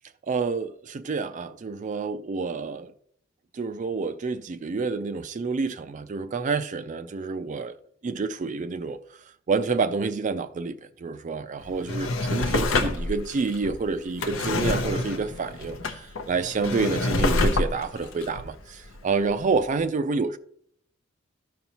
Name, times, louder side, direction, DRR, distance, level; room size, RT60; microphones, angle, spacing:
voice 1, 0.3-2.9 3.5-7.8 8.0-9.0 9.5-20.4, right 4 dB, 40° right, 0.4 m, -28 dB
Drawer open or close, 11.6-19.3 19.8-19.9, left 2 dB, 80° left, 0.7 m, -27 dB
13.5 x 5.5 x 2.9 m
head